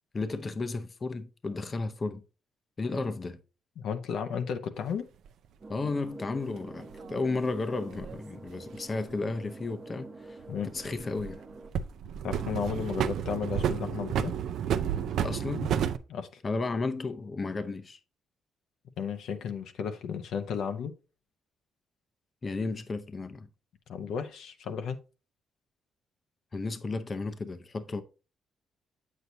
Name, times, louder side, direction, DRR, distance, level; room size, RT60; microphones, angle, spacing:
voice 1, 0.1-2.2 2.8-3.4 5.7-11.4 15.2-15.8 16.4-18.0 22.4-23.5 26.5-28.0, left 3 dB, 35° left, 0.7 m, -33 dB
voice 2, 3.8-5.1 10.5-10.7 12.2-14.3 16.1-16.3 19.0-20.9 23.9-25.0, left 7 dB, 75° left, 0.8 m, -33 dB
sound 1, 5.3-5.4 6.9-8.2 10.4-11.4 11.7-16.0, right 9 dB, 75° right, 0.5 m, -31 dB
sound 2, 5.6-11.7, right 2 dB, 35° right, 1.0 m, -46 dB
8.1 x 6.4 x 2.7 m
cardioid pair, 90°, 0 cm